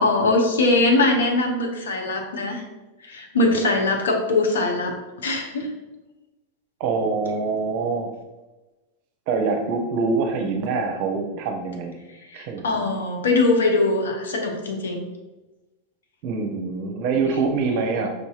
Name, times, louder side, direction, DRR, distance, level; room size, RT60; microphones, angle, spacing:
voice 1, 0.0-2.6 3.0-4.9 5.2-5.7 12.3-15.0, left 2 dB, 65° left, 2 dB, 0.7 m, -21 dB
voice 2, 6.8-8.1 9.3-12.0 12.3-12.9 16.2-18.1, right 4 dB, 45° right, 4 dB, 0.7 m, -25 dB
5.1 x 4.0 x 2.4 m, 1.1 s
figure-of-eight pair, 90°, 0 cm